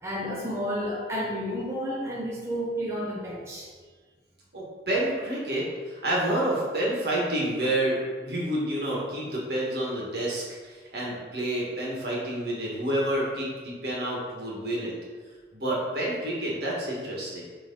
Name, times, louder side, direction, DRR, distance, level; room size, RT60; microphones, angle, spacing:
voice 1, 0.0-3.7, equal, 15° right, -4 dB, 0.7 m, -31 dB
voice 2, 4.5-14.9 15.5-17.4, right 1 dB, 65° right, -5 dB, 1.8 m, -29 dB
8.6 x 3.2 x 4.0 m, 1.5 s
head